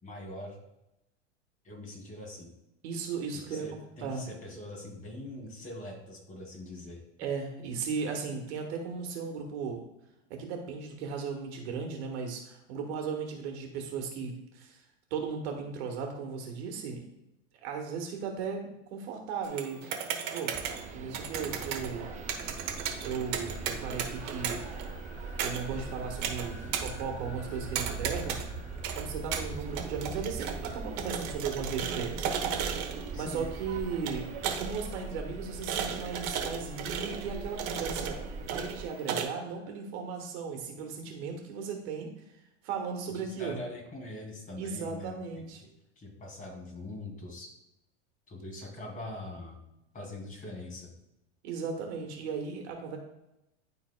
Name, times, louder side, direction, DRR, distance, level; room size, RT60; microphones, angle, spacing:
voice 1, 0.0-0.6 1.6-2.5 3.3-7.0 33.1-33.5 43.1-45.4 46.0-47.5 48.3-49.6 49.9-50.9, left 1 dB, 20° left, -1 dB, 2.5 m, -43 dB
voice 2, 2.8-4.2 7.2-9.8 10.3-14.8 15.1-17.1 17.5-19.8 20.3-22.0 23.0-24.6 25.4-28.5 29.0-32.7 33.1-34.3 34.6-42.1 42.6-43.6 44.6-45.6 51.4-53.0, right 5 dB, 65° right, 2 dB, 1.5 m, -36 dB
sound 1, 19.4-39.2, right 7 dB, 50° right, 1.1 m, -37 dB
sound 2, 20.5-38.9, right 4 dB, 20° right, 0.5 m, -41 dB
sound 3, 21.3-39.8, left 5 dB, 70° left, 1.3 m, -56 dB
12.0 x 4.0 x 2.2 m, 0.88 s
hypercardioid pair, 100°, 35 cm